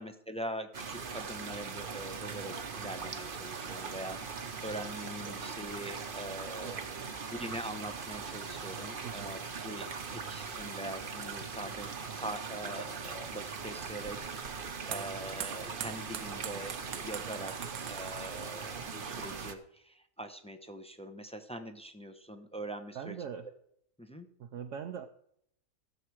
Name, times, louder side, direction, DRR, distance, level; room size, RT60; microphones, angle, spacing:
voice 1, 0.0-6.9 7.3-17.6 17.9-23.2 24.0-24.3, right 1 dB, 5° left, 6 dB, 0.7 m, -43 dB
sound 1, 0.7-19.5, right 5 dB, 45° right, 1.0 m, -40 dB
voice 2, 6.6-7.1 9.0-9.4 12.1-12.3 17.6-17.7 22.9-23.5 24.4-25.1, right 8 dB, 65° right, 5 dB, 1.0 m, -42 dB
sound 2, 13.8-19.5, right 10 dB, 90° right, 1.2 m, -45 dB
15.5 x 7.2 x 4.7 m, 0.72 s
omnidirectional pair, 1.5 m